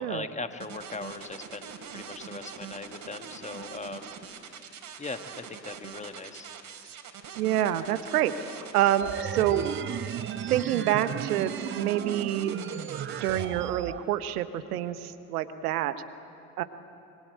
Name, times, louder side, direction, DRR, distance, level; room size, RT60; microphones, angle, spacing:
voice 1, 0.0-4.1 4.4-4.5 5.0-6.5, left 3 dB, 15° left, 8 dB, 1.7 m, -39 dB
sound 1, 0.6-13.4, right 7 dB, 45° right, 3.4 m, -43 dB
voice 2, 7.4-8.3 8.7-9.7 10.5-12.6 13.2-15.9 16.6-16.7, right 12 dB, 65° right, 12 dB, 1.3 m, -27 dB
sound 2, 9.0-14.0, right 10 dB, 25° right, 0.7 m, -35 dB
26.0 x 23.5 x 8.9 m, 2.9 s
figure-of-eight pair, 60°, 47 cm